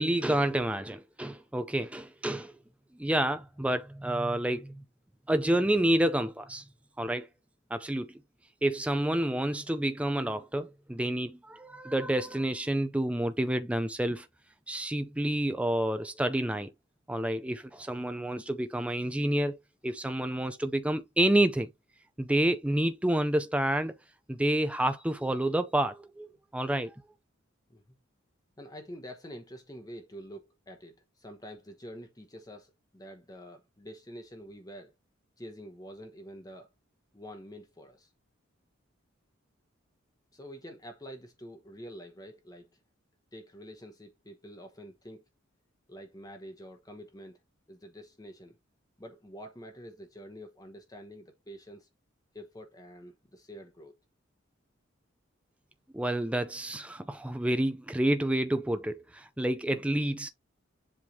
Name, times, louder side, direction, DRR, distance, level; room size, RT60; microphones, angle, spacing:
voice 1, 0.0-2.5 3.0-4.8 5.3-6.6 7.0-7.3 7.7-8.1 8.6-14.3 14.7-16.7 17.1-19.6 19.8-21.7 22.2-23.9 24.3-26.3 26.5-27.0 55.9-60.3, right 1 dB, 5° right, 0.4 m, -29 dB
voice 2, 28.6-34.9 35.4-36.7 37.1-38.1 40.3-42.7 43.3-45.2 45.9-47.4 47.7-48.6 49.0-51.9 52.3-53.9, equal, 20° left, 1.0 m, -47 dB
7.6 x 3.4 x 4.0 m
head